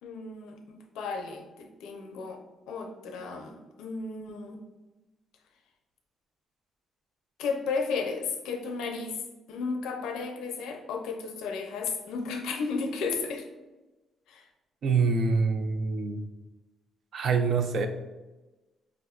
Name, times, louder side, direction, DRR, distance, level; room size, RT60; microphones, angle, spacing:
voice 1, 0.0-4.6 7.4-9.2 9.5-13.5 14.3-14.4, left 4 dB, 90° left, 4 dB, 0.4 m, -34 dB
voice 2, 14.8-16.2 17.1-17.9, right 4 dB, 60° right, 7 dB, 0.4 m, -25 dB
4.8 x 2.1 x 2.3 m, 1.1 s
cardioid pair, 90°, 0 cm